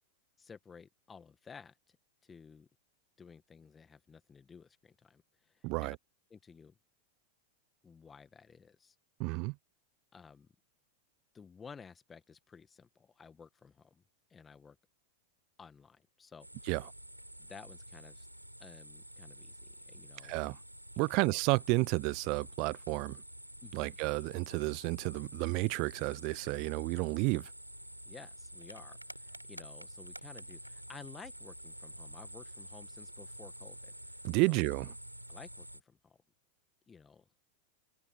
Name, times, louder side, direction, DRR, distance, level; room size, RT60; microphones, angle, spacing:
voice 1, 0.4-2.0 2.2-2.7 3.2-6.0 6.3-6.7 7.8-9.0 10.1-10.5 11.3-14.0 14.3-14.8 15.6-16.5 17.4-18.3 18.6-20.4 21.0-21.3 23.6-24.0 28.1-34.6 35.3-36.2 36.9-37.4, left 5 dB, 15° left, 1.8 m, -54 dB
voice 2, 5.6-6.0 9.2-9.5 16.7-16.8 20.2-20.6 21.0-23.2 23.7-27.5 34.2-34.9, right 29 dB, 45° right, 0.6 m, -31 dB
sound 1, 16.4-35.8, right 1 dB, 90° right, 4.4 m, -49 dB
figure-of-eight pair, 90°, 0 cm